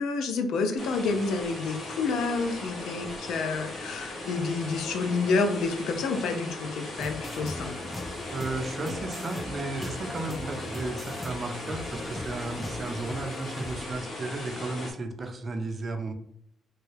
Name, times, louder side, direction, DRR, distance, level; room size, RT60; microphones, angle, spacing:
voice 1, 0.0-7.7, left 4 dB, 80° left, 7 dB, 0.5 m, -29 dB
sound 1, 0.8-14.9, left 2 dB, 55° left, 1.1 m, -38 dB
sound 2, 7.0-13.9, left 1 dB, 5° left, 0.3 m, -39 dB
voice 2, 8.3-16.1, right 2 dB, 35° right, 4 dB, 0.6 m, -34 dB
3.2 x 2.2 x 3.2 m, 0.70 s
cardioid pair, 90°, 0 cm